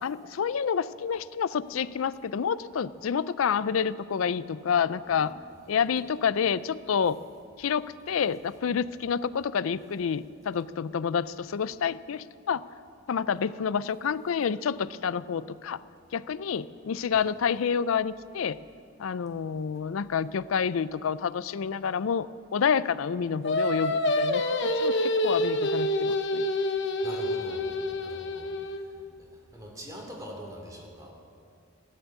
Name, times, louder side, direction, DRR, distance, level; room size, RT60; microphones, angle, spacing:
voice 1, 0.0-5.3 5.7-7.2 7.6-12.6 13.1-15.8 16.1-18.6 19.0-26.4, left 7 dB, 85° left, 17 dB, 0.4 m, -28 dB
Singing, 23.4-28.8, left 1 dB, 60° left, 1.1 m, -27 dB
voice 2, 27.0-27.7 28.0-28.5 29.5-31.1, equal, 15° right, 0 dB, 2.8 m, -42 dB
14.5 x 10.5 x 8.5 m, 2.4 s
head